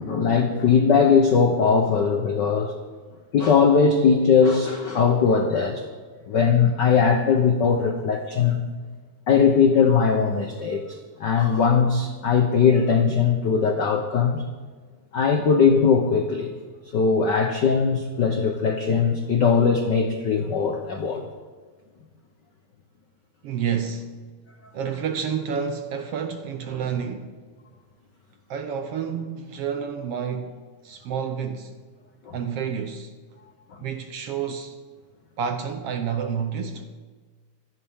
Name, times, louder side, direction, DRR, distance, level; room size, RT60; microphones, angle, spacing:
voice 1, 0.0-2.7 3.3-5.8 6.3-8.6 9.3-14.4 15.1-16.5 16.9-21.3 32.2-32.4, left 6 dB, 75° left, 1.0 m, -20 dB
voice 2, 23.4-24.2 24.7-27.3 28.5-30.6 30.8-31.8 32.3-33.1 33.8-34.8 35.4-36.9, right 7 dB, 65° right, 1.6 m, -29 dB
26.0 x 10.0 x 3.6 m
omnidirectional pair, 3.4 m